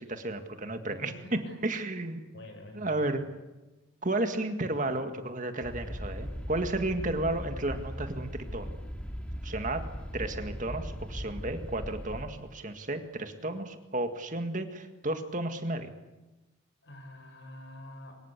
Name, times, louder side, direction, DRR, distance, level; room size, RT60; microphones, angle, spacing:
voice 1, 0.0-2.4 2.7-3.3 4.0-8.8 9.4-9.9 10.1-15.9, right 2 dB, 40° right, 7 dB, 1.9 m, -33 dB
voice 2, 1.0-1.6 2.3-3.1 16.8-18.2, left 1 dB, 65° left, 5 dB, 6.5 m, -46 dB
sound 1, 5.6-12.3, equal, 5° left, 2.4 m, -39 dB
24.5 x 22.5 x 8.3 m, 1.1 s
head